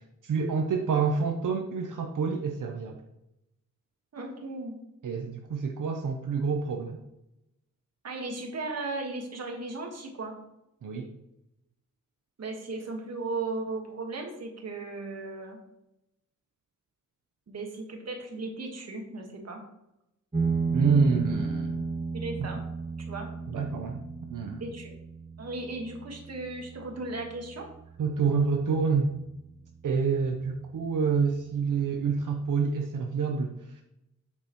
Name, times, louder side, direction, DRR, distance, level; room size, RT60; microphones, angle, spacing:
voice 1, 0.2-3.0 5.0-7.0 10.8-11.1 20.7-21.9 22.4-22.5 23.5-24.6 28.0-29.1 29.8-33.5, right 5 dB, 85° right, 2 dB, 0.8 m, -27 dB
voice 2, 4.1-4.8 8.0-10.4 12.4-15.6 17.5-19.6 22.1-22.6 23.1-23.3 24.6-25.0 25.4-27.7, right 3 dB, 55° right, 1 dB, 1.6 m, -36 dB
sound 1, 20.3-29.3, right 4 dB, 20° right, 1.5 m, -34 dB
8.5 x 6.6 x 3.0 m, 0.86 s
wide cardioid pair, 180°, 31 cm